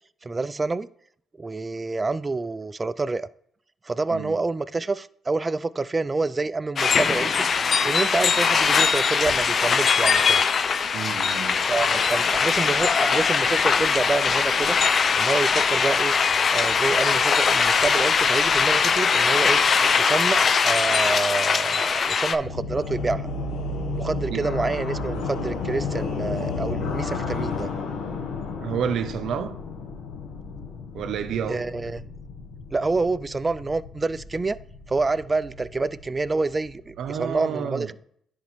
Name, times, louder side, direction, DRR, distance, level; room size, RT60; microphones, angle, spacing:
voice 1, 0.2-0.9 1.4-3.3 3.8-7.4 7.8-10.4 11.7-16.1 16.5-19.6 20.0-23.3 24.0-27.7 31.5-32.0 32.7-34.6 34.9-37.9, right 3 dB, 25° right, 0.3 m, -27 dB
sound 1, 6.8-22.4, left 5 dB, 45° left, 0.4 m, -21 dB
voice 2, 10.9-11.6 24.3-24.5 28.6-29.5 30.9-31.7 37.0-37.9, right 8 dB, 75° right, 0.6 m, -30 dB
sound 2, 22.4-37.3, left 3 dB, 85° left, 0.9 m, -32 dB
10.5 x 4.2 x 3.1 m
cardioid pair, 90°, 0 cm